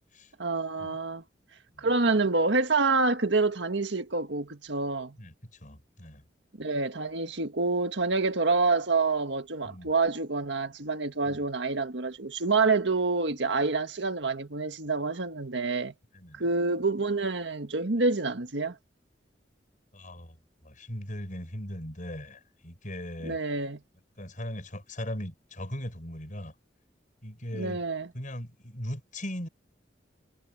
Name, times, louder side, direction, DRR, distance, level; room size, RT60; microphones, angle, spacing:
voice 1, 0.4-1.2 1.8-5.2 6.6-15.9 16.3-18.8 23.2-23.8 27.5-28.1, right 3 dB, 80° right, 1.7 m, -27 dB
voice 2, 5.2-6.2 9.6-9.9 11.3-11.5 16.1-16.4 19.9-23.4 24.2-26.5 27.2-27.8 28.1-29.5, equal, 45° left, 7.4 m, -39 dB
head